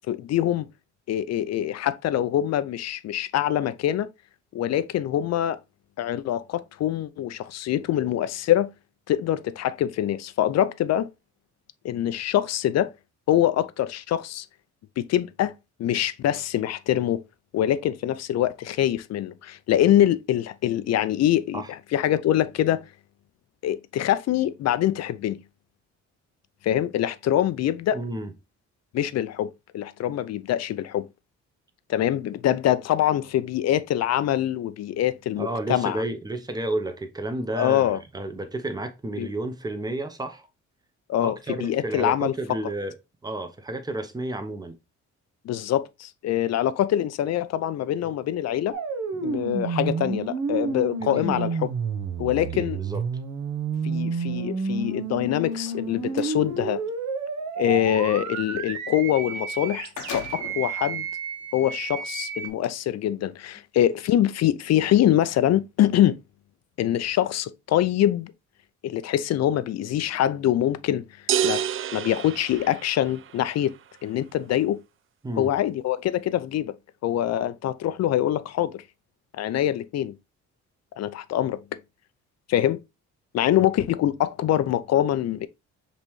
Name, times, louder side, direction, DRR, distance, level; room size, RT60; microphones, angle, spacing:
voice 1, 0.1-0.7 1.1-4.1 4.5-5.6 6.0-8.7 9.1-11.1 11.8-12.9 13.3-14.5 15.0-15.5 15.8-17.2 17.5-21.6 21.9-22.8 23.6-25.4 26.6-28.0 28.9-31.1 31.9-36.0 37.6-38.0 39.2-39.3 41.1-42.6 45.4-48.7 49.2-51.7 52.2-52.8 53.8-56.8 57.6-61.1 61.5-66.2 66.8-68.3 68.8-71.0 71.4-71.6 71.9-73.7 74.0-74.8 75.4-76.7 77.0-78.8 79.4-80.1 81.0-81.6 82.5-82.8 83.3-85.5, left 12 dB, 60° left, 0.5 m, -24 dB
voice 2, 27.9-28.3 35.4-40.5 41.2-42.9 43.2-44.8 48.0-48.1 49.1-49.3 51.0-51.4 52.5-53.0 75.2-75.5, right 2 dB, 15° right, 0.9 m, -31 dB
sound 1, 48.7-62.5, right 4 dB, 70° right, 1.0 m, -30 dB
sound 2, 55.4-56.4 59.2-59.3 59.6-60.7 61.4-61.5 62.4-62.7, left 7 dB, 80° left, 0.9 m, -39 dB
sound 3, 71.3-73.3, right 10 dB, 45° right, 0.4 m, -27 dB
5.3 x 3.0 x 3.0 m
cardioid pair, 90°, 30 cm